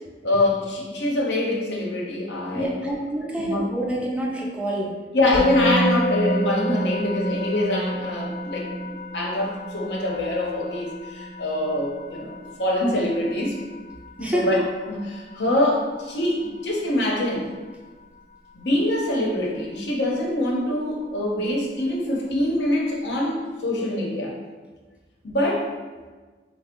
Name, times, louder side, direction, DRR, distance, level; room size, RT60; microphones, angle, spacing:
voice 1, 0.2-2.9 3.2-3.7 5.1-13.6 14.2-17.5 18.5-24.3 25.2-25.7, left 1 dB, 75° left, -2 dB, 0.7 m, -24 dB
voice 2, 2.5-4.9 14.2-14.5, right 1 dB, 5° right, -3 dB, 0.4 m, -27 dB
Musical instrument, 5.3-16.4, equal, 15° left, 0.7 m, -30 dB
3.5 x 2.0 x 3.6 m, 1.3 s
head